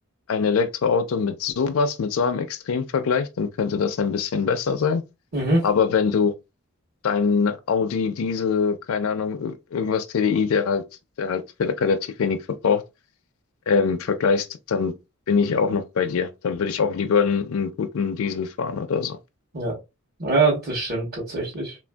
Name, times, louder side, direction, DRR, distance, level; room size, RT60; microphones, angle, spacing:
voice 1, 0.3-5.0 5.6-6.3 7.0-10.8 11.2-12.4 12.6-12.8 13.7-14.9 15.3-19.2, left 5 dB, 70° left, 0.4 m, -23 dB
voice 2, 5.3-5.6 19.5-19.8 20.2-21.8, right 3 dB, 45° right, 1.0 m, -23 dB
3.3 x 2.5 x 2.2 m
head